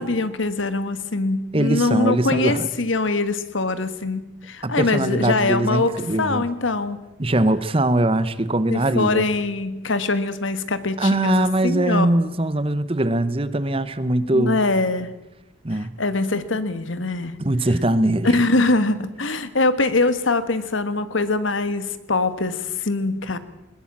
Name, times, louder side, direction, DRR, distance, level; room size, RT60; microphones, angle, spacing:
voice 1, 0.0-5.9 6.2-7.0 8.7-12.1 14.3-15.1 16.0-17.3 18.2-23.4, left 3 dB, 90° left, 12 dB, 1.6 m, -23 dB
voice 2, 1.5-2.7 4.6-6.5 7.2-9.3 11.0-14.6 15.6-15.9 17.4-18.4, right 1 dB, 30° right, 14 dB, 1.0 m, -21 dB
20.5 x 20.0 x 7.5 m, 1.0 s
head